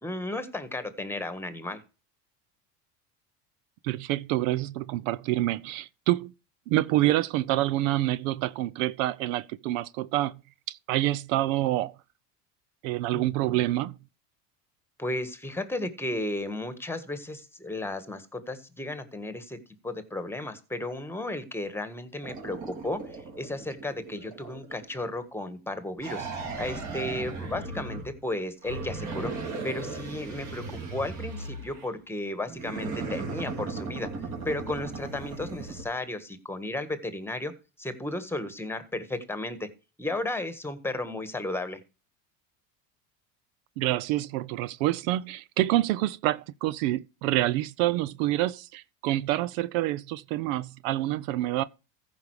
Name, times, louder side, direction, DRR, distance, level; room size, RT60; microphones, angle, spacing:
voice 1, 0.0-1.8 13.1-13.7 15.0-19.6 19.8-26.3 26.6-29.3 29.6-34.1 34.4-37.5 37.8-39.7 40.0-41.8, left 1 dB, 5° left, 1.5 m, -34 dB
voice 2, 3.8-6.3 6.7-10.4 10.7-11.9 12.8-14.0 43.8-51.6, right 15 dB, 75° right, 0.6 m, -27 dB
sound 1, 22.2-25.1 26.0-28.2 28.6-31.9 32.5-35.8, right 3 dB, 45° right, 3.9 m, -37 dB
14.5 x 5.4 x 4.8 m
supercardioid pair, 105°, 39 cm